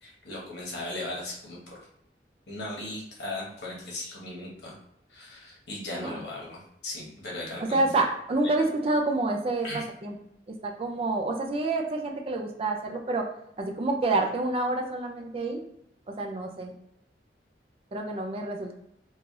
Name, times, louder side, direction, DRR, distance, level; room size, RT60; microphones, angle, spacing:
voice 1, 0.0-1.8 2.5-4.7 5.1-7.9 9.6-9.8, left 2 dB, 70° left, -4 dB, 1.1 m, -37 dB
voice 2, 7.6-10.1 10.5-13.3 13.6-15.6 16.1-16.7 17.9-18.7, right 2 dB, 35° right, 2 dB, 0.3 m, -28 dB
3.2 x 2.3 x 2.5 m, 0.77 s
head